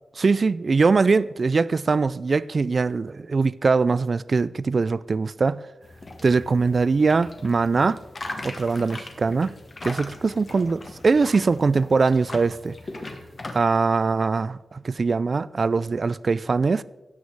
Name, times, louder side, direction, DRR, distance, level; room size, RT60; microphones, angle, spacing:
voice 1, 0.2-5.6 6.2-8.0 8.4-9.5 9.8-12.8 13.5-16.8, right 4 dB, 45° right, 0.3 m, -22 dB
sound 1, 5.8-13.6, left 2 dB, 40° left, 1.5 m, -39 dB
16.5 x 6.5 x 4.7 m
wide cardioid pair, 85°, 0 cm